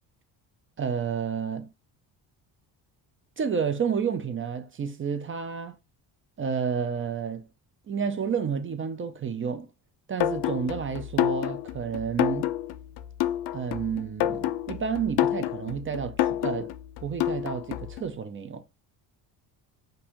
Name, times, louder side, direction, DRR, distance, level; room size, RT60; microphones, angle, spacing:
voice 1, 0.8-1.7 3.4-5.8 6.4-7.5 7.9-9.7 10.1-12.5 13.5-16.7 17.0-18.6, right 6 dB, 30° right, 0.5 m, -30 dB
sound 1, 10.2-18.0, left 13 dB, 70° left, 0.5 m, -28 dB
5.3 x 2.6 x 3.0 m
cardioid pair, 125°, 42 cm